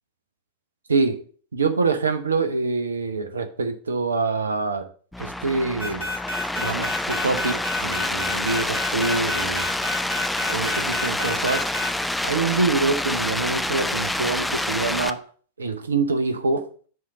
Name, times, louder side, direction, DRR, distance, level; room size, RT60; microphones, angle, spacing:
voice 1, 0.9-1.2 1.5-4.9 5.2-6.1 6.6-9.7 10.5-11.7 12.2-15.2 15.6-16.9, right 4 dB, 75° right, 0.8 m, -25 dB
sound 1, 5.1-15.1, left 1 dB, 5° left, 0.4 m, -27 dB
sound 2, 5.8-12.0, left 3 dB, 70° left, 2.5 m, -29 dB
7.6 x 3.6 x 6.5 m
figure-of-eight pair, 90°, 0 cm